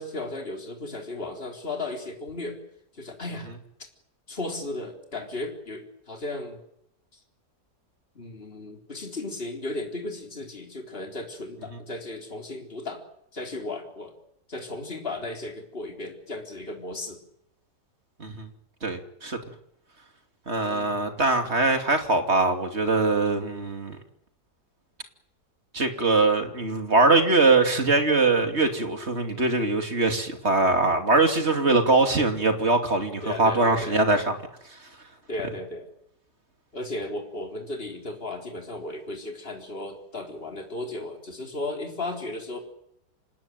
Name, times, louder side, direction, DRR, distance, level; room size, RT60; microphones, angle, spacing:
voice 1, 0.0-2.6 2.9-3.5 4.3-6.6 8.2-13.0 13.3-14.1 14.5-17.2 20.6-21.1 33.2-34.0 35.3-35.9 36.7-42.6, left 2 dB, 30° left, 4.1 m, -35 dB
voice 2, 18.8-19.4 20.5-24.0 25.7-34.3, right 3 dB, 40° right, 3.0 m, -22 dB
27.0 x 19.0 x 9.3 m
omnidirectional pair, 1.9 m